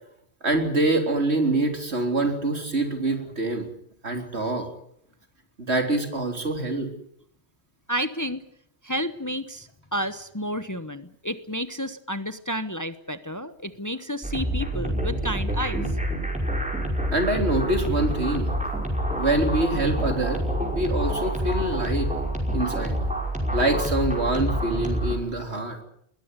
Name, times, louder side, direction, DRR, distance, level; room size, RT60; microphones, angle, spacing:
voice 1, 0.4-3.7 4.0-4.7 5.6-6.9 17.1-18.5 19.2-20.4 20.7-22.1 22.5-23.0 23.5-25.8, right 2 dB, 75° right, 5 dB, 3.9 m, -25 dB
voice 2, 7.9-8.4 8.8-16.0, equal, 20° left, 12 dB, 0.9 m, -31 dB
sound 1, 14.2-25.1, right 1 dB, 5° right, 5.5 m, -27 dB
21.0 x 17.5 x 9.8 m, 0.71 s
omnidirectional pair, 1.1 m